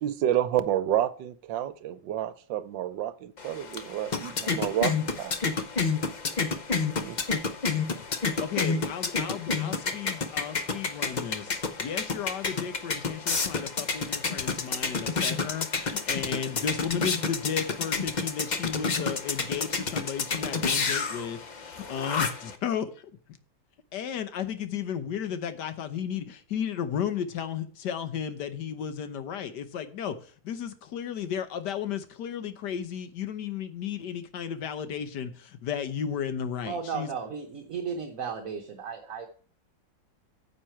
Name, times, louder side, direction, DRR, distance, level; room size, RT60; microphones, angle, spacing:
voice 1, 0.0-5.4 7.0-7.2, right 11 dB, 80° right, 1.4 m, -29 dB
sound 1, 3.4-22.6, left 4 dB, 45° left, 0.5 m, -30 dB
voice 2, 8.1-11.5 11.8-23.1 23.9-37.1, left 8 dB, 65° left, 1.5 m, -34 dB
voice 3, 36.7-39.3, right 6 dB, 55° right, 1.2 m, -34 dB
9.5 x 7.4 x 4.4 m
omnidirectional pair, 2.0 m